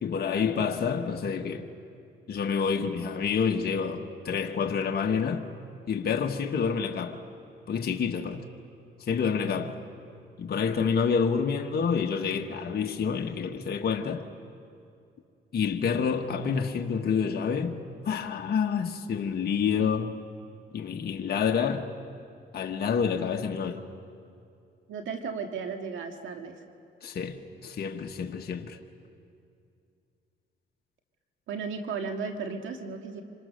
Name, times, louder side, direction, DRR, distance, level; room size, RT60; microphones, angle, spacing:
voice 1, 0.0-1.7 2.3-5.5 5.9-7.2 7.7-8.4 9.0-9.8 10.4-14.3 15.5-20.2 20.7-21.9 22.5-23.8 27.0-28.8, left 6 dB, 55° left, 1.4 m, -28 dB
voice 2, 24.9-26.6 31.5-33.2, right 5 dB, 75° right, 1.9 m, -35 dB
27.5 x 26.5 x 6.6 m
cardioid pair, 90°, 20 cm